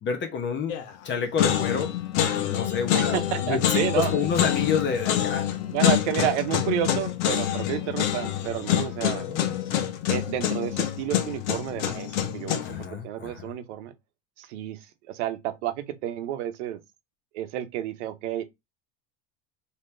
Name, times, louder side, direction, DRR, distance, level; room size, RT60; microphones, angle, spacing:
voice 1, 0.0-0.7 1.0-1.9 2.3-5.5 9.3-9.5 12.6-13.4, left 6 dB, 30° left, 0.9 m, -29 dB
sound 1, 0.7-1.0 1.4-12.8, left 11 dB, 80° left, 1.0 m, -26 dB
voice 2, 2.9-4.2 5.7-9.3 10.1-13.9 14.4-14.8 15.1-16.8 17.3-18.4, right 12 dB, 80° right, 0.9 m, -30 dB
4.2 x 3.0 x 3.2 m
supercardioid pair, 125°, 35 cm